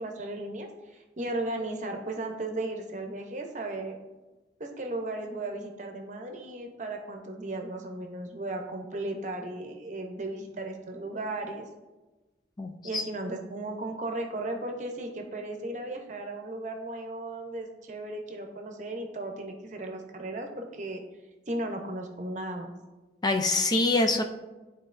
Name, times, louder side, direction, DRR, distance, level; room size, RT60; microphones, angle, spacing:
voice 1, 0.0-4.0 4.6-11.7 12.8-21.0 21.5-22.7, right 2 dB, 40° right, 3 dB, 0.8 m, -36 dB
voice 2, 12.6-13.0 23.2-24.3, left 2 dB, 20° left, 4 dB, 0.4 m, -25 dB
11.5 x 4.0 x 2.6 m, 1.1 s
head